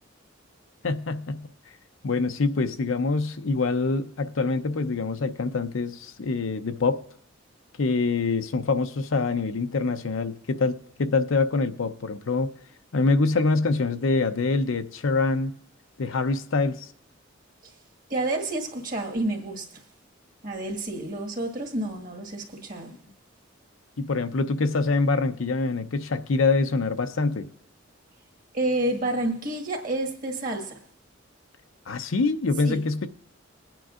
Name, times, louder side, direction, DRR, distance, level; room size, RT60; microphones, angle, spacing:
voice 1, 0.8-1.5 2.0-7.0 7.8-12.5 12.9-15.5 16.0-16.9 24.0-27.5 31.9-33.1, left 3 dB, 75° left, 0.6 m, -25 dB
voice 2, 18.1-19.8 20.4-22.9 28.5-30.8 32.7-32.9, right 2 dB, 45° right, 1.6 m, -29 dB
21.5 x 9.0 x 2.5 m
head